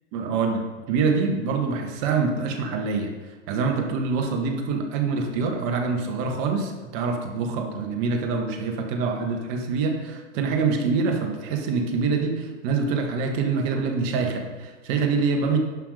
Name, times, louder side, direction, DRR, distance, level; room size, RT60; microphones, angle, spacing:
voice 1, 0.1-0.6 0.9-3.1 3.5-15.6, right 4 dB, 45° right, 4 dB, 1.7 m, -25 dB
11.0 x 5.8 x 5.1 m, 1.3 s
hypercardioid pair, 115°, 37 cm